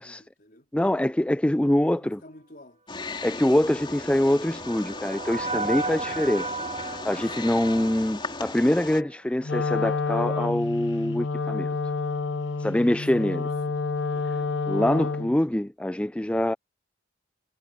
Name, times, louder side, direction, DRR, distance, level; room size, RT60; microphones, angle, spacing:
voice 1, 0.0-0.7 2.0-2.8 7.4-7.7 13.1-14.6, left 1 dB, 50° left, 4.1 m, -52 dB
voice 2, 0.7-2.2 3.2-11.8 12.6-13.5 14.7-16.5, left 1 dB, 5° left, 0.3 m, -24 dB
Wild animals, 2.9-9.0, left 3 dB, 25° left, 3.7 m, -37 dB
sound 1, 3.8-9.1, right 3 dB, 35° right, 3.0 m, -35 dB
Wind instrument woodwind instrument, 9.4-15.4, left 4 dB, 75° left, 0.9 m, -29 dB
head